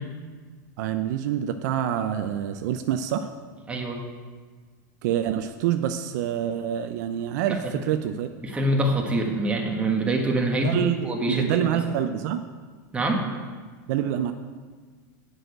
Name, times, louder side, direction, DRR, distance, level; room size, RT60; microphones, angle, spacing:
voice 1, 0.8-3.3 5.0-8.3 10.6-12.5 13.9-14.3, right 10 dB, 60° right, 8 dB, 0.6 m, -26 dB
voice 2, 3.7-4.0 7.5-7.7 8.4-11.7 12.9-13.2, right 1 dB, 10° right, 1 dB, 1.5 m, -25 dB
7.7 x 6.3 x 7.9 m, 1.5 s
supercardioid pair, 140°, 10 cm